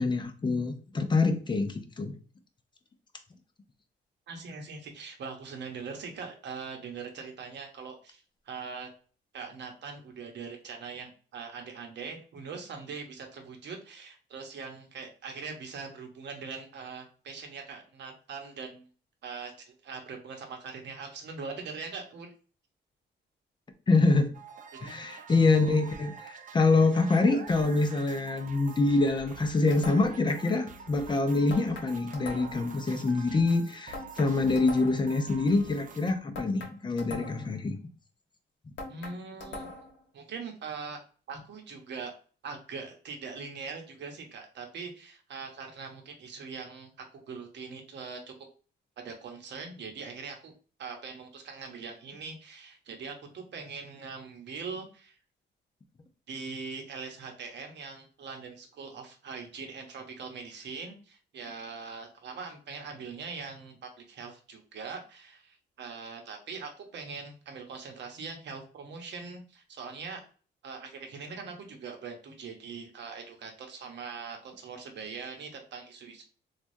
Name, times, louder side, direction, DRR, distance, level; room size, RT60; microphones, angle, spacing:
voice 1, 0.0-2.1 23.9-24.3 24.8-37.8, left 3 dB, 25° left, 6 dB, 0.6 m, -25 dB
voice 2, 4.3-8.9 9.3-18.9 19.2-22.3 24.8-25.3 38.9-39.7 40.1-41.0 41.3-42.1 42.4-48.3 49.0-50.5 50.8-55.2 56.3-70.3 70.6-76.2, right 5 dB, 65° right, 4 dB, 0.9 m, -42 dB
sound 1, 24.3-36.1, right 5 dB, 40° right, 0.5 m, -47 dB
sound 2, 29.7-30.3 31.5-32.7 33.9-35.1 36.3-37.6 38.8-40.0, left 2 dB, 65° left, 0.9 m, -42 dB
3.3 x 2.3 x 2.6 m, 0.38 s
cardioid pair, 90°, 20 cm